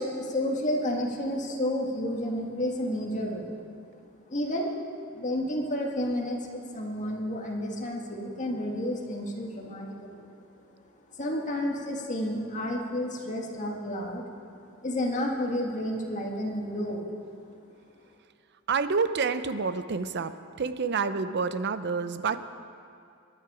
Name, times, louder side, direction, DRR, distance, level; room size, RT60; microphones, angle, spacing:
voice 1, 0.0-3.5 4.3-4.7 5.0-10.3 11.1-14.2 14.8-17.2, left 1 dB, 35° left, -1 dB, 1.8 m, -31 dB
voice 2, 18.7-22.4, right 5 dB, 55° right, 12 dB, 0.6 m, -28 dB
22.5 x 10.0 x 4.9 m, 2.5 s
head